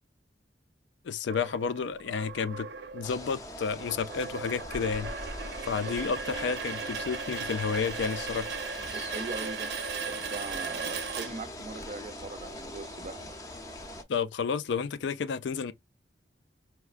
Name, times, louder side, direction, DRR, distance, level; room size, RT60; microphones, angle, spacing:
voice 1, 1.0-2.7 2.9-5.1 5.6-8.5 14.1-15.7, left 6 dB, 80° left, 0.4 m, -31 dB
sound 1, 1.3-11.9, right 5 dB, 75° right, 0.7 m, -38 dB
sound 2, 3.0-14.0, left 1 dB, 20° left, 0.6 m, -42 dB
voice 2, 8.9-9.7 10.0-13.4, right 3 dB, 40° right, 0.5 m, -40 dB
4.6 x 2.1 x 2.4 m
head